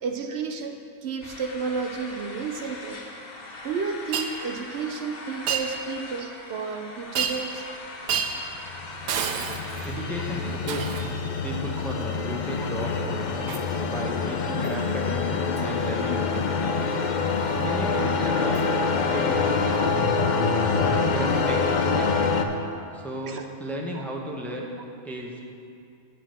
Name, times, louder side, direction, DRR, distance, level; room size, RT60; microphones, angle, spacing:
voice 1, 0.0-3.0 3.6-7.6 17.9-18.0 23.3-23.4 23.9-24.0, right 5 dB, 65° right, 5 dB, 0.7 m, -32 dB
sound 1, 1.2-10.6, left 2 dB, 45° left, 1.0 m, -41 dB
Shatter, 4.1-4.3 5.5-5.7 7.1-7.6 8.1-8.4 9.1-9.9 10.7-11.1 13.5-13.7 14.6-14.8 15.6-15.7 18.5-18.6 19.7-19.8, right 7 dB, 90° right, 1.1 m, -29 dB
sound 2, 8.3-22.4, left 4 dB, 70° left, 0.4 m, -25 dB
voice 2, 9.8-11.1 11.4-13.1 13.9-16.6 17.6-18.6 19.1-19.6 21.1-22.2 22.9-24.7 25.0-25.4, equal, ahead, 0 dB, 0.6 m, -34 dB
8.6 x 5.4 x 7.4 m, 2.5 s
omnidirectional pair, 1.5 m